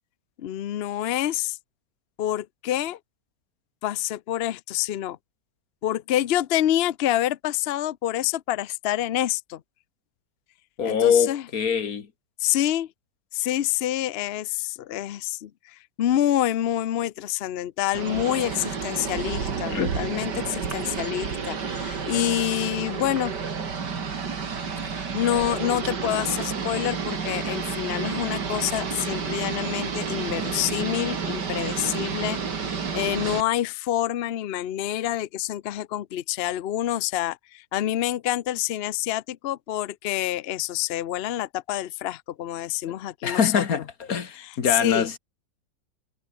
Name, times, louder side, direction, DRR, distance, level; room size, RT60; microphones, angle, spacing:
voice 1, 0.4-1.6 2.2-3.0 3.8-5.2 5.8-9.6 10.8-11.4 12.4-12.9 13.3-23.3 24.9-43.6 44.4-45.1, left 12 dB, 75° left, 0.5 m, -27 dB
voice 2, 10.8-12.1 19.7-19.9 43.2-43.8 44.1-45.2, left 6 dB, 55° left, 2.0 m, -23 dB
sound 1, 17.9-33.4, right 5 dB, 75° right, 3.0 m, -30 dB
omnidirectional pair, 1.9 m